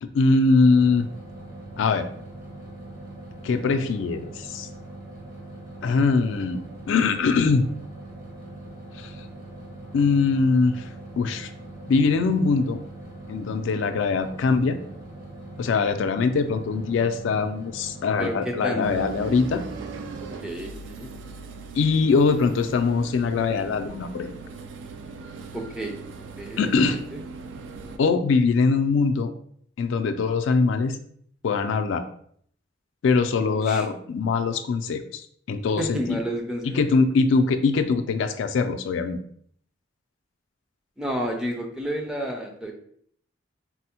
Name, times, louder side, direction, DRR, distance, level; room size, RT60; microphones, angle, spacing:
voice 1, 0.0-1.1 1.8-2.1 3.4-4.7 5.8-6.6 6.9-7.6 9.0-9.1 9.9-10.9 11.2-11.5 11.9-12.8 13.3-14.8 15.6-19.6 21.7-24.4 26.6-27.0 28.0-29.3 29.8-31.0 31.4-32.0 33.0-36.2 36.7-39.2, left 4 dB, 75° left, 8 dB, 0.3 m, -22 dB
sound 1, 0.6-20.3, right 2 dB, 50° right, 1.1 m, -41 dB
voice 2, 18.2-19.0 20.4-21.1 25.5-26.0 26.4-27.2 33.5-33.9 35.8-36.8 41.0-42.7, equal, 5° right, 2 dB, 0.4 m, -31 dB
sound 2, 18.8-28.0, right 4 dB, 75° right, 0.3 m, -39 dB
4.2 x 2.0 x 2.8 m, 0.62 s
head